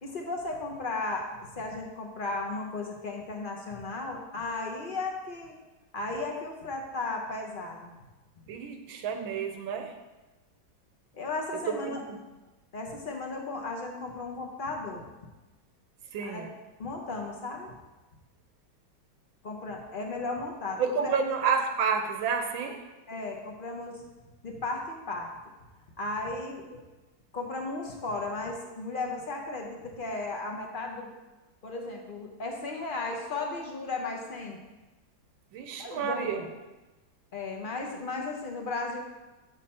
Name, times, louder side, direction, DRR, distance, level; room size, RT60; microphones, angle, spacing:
voice 1, 0.0-5.6 5.9-7.9 11.1-12.0 12.7-15.1 16.2-16.5 16.8-17.7 19.4-21.1 23.1-24.0 24.4-25.3 26.0-26.8 27.3-31.1 31.6-34.6 35.8-36.5 37.3-39.0, left 3 dB, 45° left, 1 dB, 0.6 m, -35 dB
voice 2, 8.5-9.9 11.5-12.2 16.1-16.5 20.8-22.8 35.5-36.5, right 6 dB, 85° right, 6 dB, 1.6 m, -30 dB
7.2 x 6.6 x 4.3 m, 1.1 s
omnidirectional pair, 2.1 m